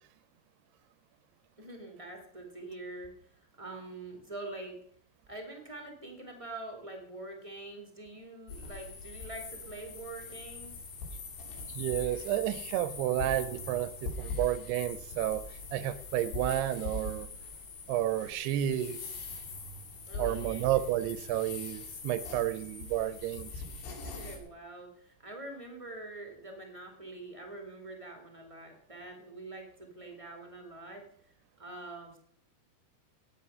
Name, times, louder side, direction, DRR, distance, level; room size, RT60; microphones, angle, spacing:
voice 1, 1.6-4.8 5.3-10.8 20.1-20.8 24.0-31.0 31.6-32.2, right 2 dB, 25° right, 2 dB, 0.6 m, -45 dB
sound 1, 8.5-24.4, left 3 dB, 80° left, 5.0 m, -42 dB
voice 2, 11.7-15.4 15.7-17.3 17.9-19.0 20.2-23.5, right 12 dB, 80° right, 14 dB, 2.5 m, -31 dB
17.5 x 9.5 x 5.6 m, 0.69 s
omnidirectional pair, 5.1 m